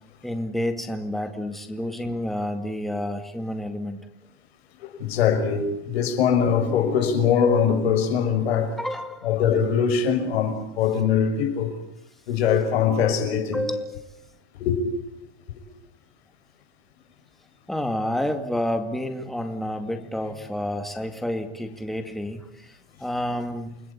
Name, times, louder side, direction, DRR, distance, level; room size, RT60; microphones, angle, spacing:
voice 1, 0.2-4.0 8.8-9.3 13.5-14.0 17.7-23.8, left 1 dB, ahead, 2.2 m, -29 dB
voice 2, 4.8-8.8 9.2-11.7 12.3-13.6 14.6-15.0, left 7 dB, 90° left, 6.4 m, -22 dB
29.5 x 20.5 x 8.7 m
supercardioid pair, 150°, 31 cm